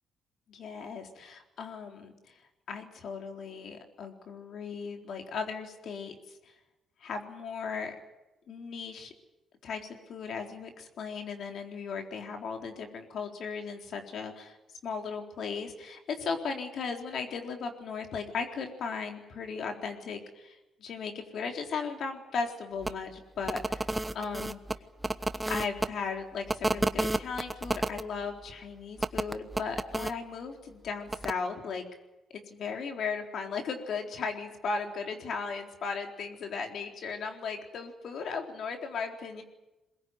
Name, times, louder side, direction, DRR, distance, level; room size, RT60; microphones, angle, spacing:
voice 1, 0.5-2.1 2.7-6.2 7.0-8.0 8.5-9.1 9.6-14.6 14.8-24.6 25.5-31.9 32.3-39.4, left 5 dB, 65° left, 3 dB, 3.9 m, -36 dB
sound 1, 22.8-22.9 23.4-25.9 26.5-28.0 29.0-30.1 31.1-31.3, right 1 dB, 15° right, 1.1 m, -31 dB
22.5 x 20.5 x 9.5 m, 1.0 s
cardioid pair, 90°, 0 cm